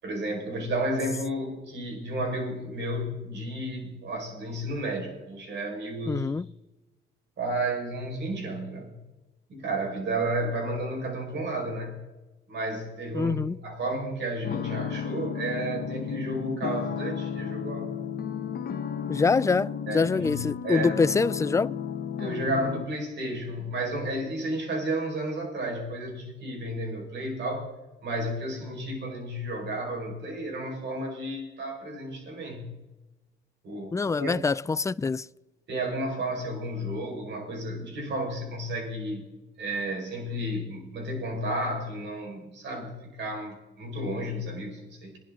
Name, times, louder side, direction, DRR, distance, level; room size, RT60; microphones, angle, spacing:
voice 1, 0.0-6.3 7.4-8.9 9.5-12.0 12.5-18.0 19.9-21.0 22.2-27.7 28.0-32.7 33.6-34.4 35.7-39.3 39.6-45.2, right 1 dB, 60° right, 4.9 m, -32 dB
voice 2, 6.1-6.5 13.1-13.6 19.1-21.8 33.9-35.3, left 4 dB, 15° left, 0.3 m, -25 dB
sound 1, 14.4-22.9, left 7 dB, 50° left, 1.2 m, -33 dB
22.0 x 11.0 x 3.7 m
cardioid pair, 90°, 20 cm